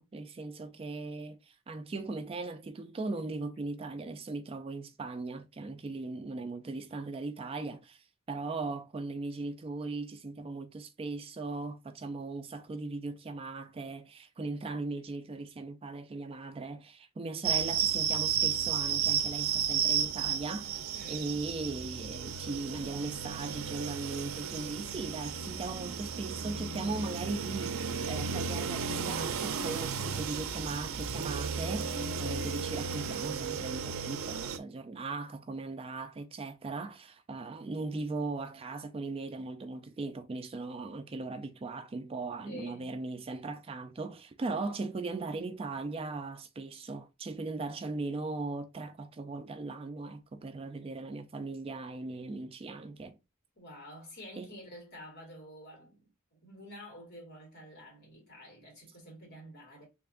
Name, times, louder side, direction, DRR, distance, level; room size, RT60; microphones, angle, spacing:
voice 1, 0.0-53.2 54.4-54.5, right 3 dB, 30° right, 0.3 m, -38 dB
sound 1, 17.4-34.6, right 7 dB, 90° right, 0.5 m, -33 dB
voice 2, 20.9-21.4 42.4-42.9 53.6-59.9, equal, 50° left, 2.2 m, -49 dB
3.3 x 2.5 x 3.7 m
head